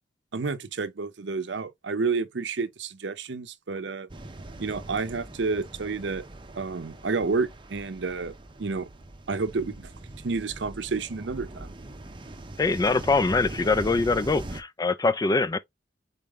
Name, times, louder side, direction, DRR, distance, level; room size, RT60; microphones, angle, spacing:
voice 1, 0.3-4.1 4.6-6.3 6.6-8.3 8.6-8.9 9.3-9.9 10.2-11.7, right 4 dB, 70° right, 0.6 m, -30 dB
sound 1, 4.1-14.6, right 2 dB, 25° right, 0.7 m, -41 dB
voice 2, 12.6-15.6, left 3 dB, 20° left, 0.3 m, -23 dB
4.2 x 3.6 x 3.5 m
head